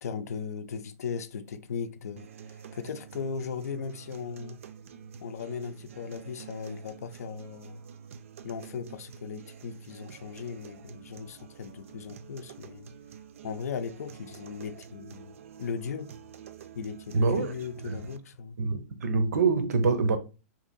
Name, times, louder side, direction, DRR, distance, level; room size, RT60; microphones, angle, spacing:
voice 1, 0.0-2.3 2.7-4.6 5.2-7.8 8.4-12.9 13.4-16.1 16.7-18.6, left 6 dB, 90° left, 0.5 m, -37 dB
sound 1, 2.2-18.2, right 7 dB, 60° right, 0.4 m, -48 dB
voice 2, 17.1-17.5 17.8-18.0 18.6-20.2, right 4 dB, 90° right, 0.7 m, -25 dB
2.9 x 2.6 x 3.9 m
hypercardioid pair, 170°, 8 cm